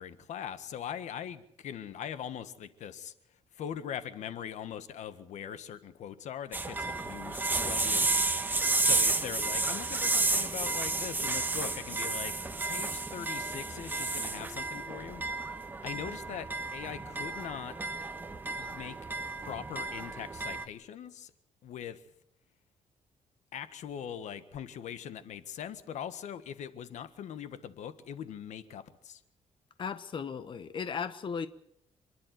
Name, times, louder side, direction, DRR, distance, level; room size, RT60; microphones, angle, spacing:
voice 1, 0.0-3.1 3.5-8.1 8.5-12.3 12.7-15.2 15.8-17.8 18.6-21.3 21.6-22.0 23.5-29.2, left 9 dB, 85° left, 1.6 m, -41 dB
sound 1, 6.5-20.6, right 3 dB, 15° right, 1.5 m, -32 dB
voice 2, 29.8-31.5, left 6 dB, 45° left, 1.2 m, -36 dB
28.0 x 11.5 x 9.4 m
cardioid pair, 140°, 12 cm